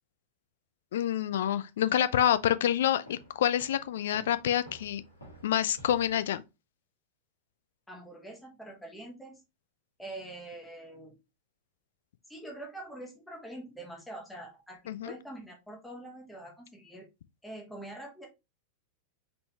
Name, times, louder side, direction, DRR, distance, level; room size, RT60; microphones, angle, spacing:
voice 1, 0.9-5.0 5.4-6.4 14.9-15.1, left 11 dB, 60° left, 0.4 m, -27 dB
Walk footsteps, 3.0-6.4, equal, 80° left, 1.7 m, -52 dB
voice 2, 7.9-9.4 10.0-11.2 12.3-17.1 17.4-18.3, right 1 dB, 5° left, 1.2 m, -44 dB
3.8 x 3.8 x 2.9 m
figure-of-eight pair, 90°, 0 cm